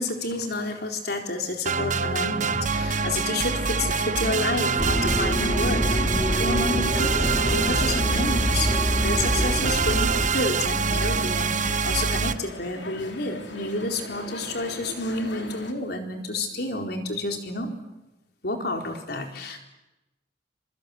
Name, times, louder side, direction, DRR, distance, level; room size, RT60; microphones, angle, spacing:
voice 1, 0.0-17.8 18.4-19.6, left 2 dB, 60° left, 4 dB, 4.3 m, -30 dB
sound 1, 1.6-12.3, right 5 dB, 45° right, 1.0 m, -25 dB
sound 2, 2.7-15.7, left 2 dB, 75° left, 3.6 m, -39 dB
sound 3, 4.8-10.3, equal, 25° left, 1.9 m, -26 dB
27.0 x 24.5 x 8.5 m, 0.97 s
head